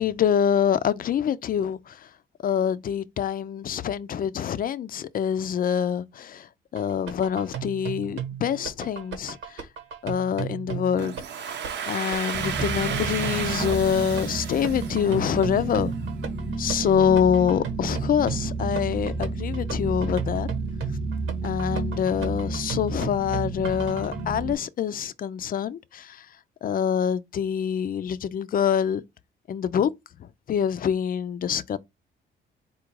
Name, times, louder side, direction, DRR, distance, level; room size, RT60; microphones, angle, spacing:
voice 1, 0.0-2.0 2.4-6.5 6.7-9.7 10.0-11.1 11.9-15.9 16.6-20.5 21.4-26.3 26.6-29.0 29.5-29.9 30.2-31.8, left 8 dB, 45° left, 0.4 m, -25 dB
sound 1, 6.8-24.3, right 8 dB, 85° right, 1.2 m, -36 dB
Domestic sounds home sounds, 11.0-15.7, right 7 dB, 65° right, 0.8 m, -33 dB
sound 2, 12.3-24.5, right 3 dB, 5° right, 0.8 m, -31 dB
4.3 x 2.4 x 4.6 m
cardioid pair, 90°, 20 cm